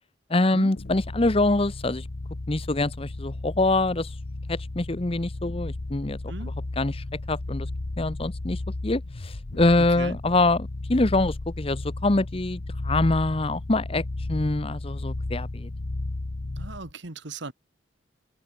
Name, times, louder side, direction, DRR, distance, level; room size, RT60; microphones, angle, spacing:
voice 1, 0.3-2.0 2.5-4.1 4.5-6.2 6.8-7.7 8.0-14.0 14.3-15.7, left 2 dB, 30° left, 0.9 m, -25 dB
sound 1, 0.8-16.9, left 2 dB, 55° left, 0.9 m, -34 dB
voice 2, 9.8-10.2 16.6-17.5, right 3 dB, 70° right, 1.8 m, -38 dB
head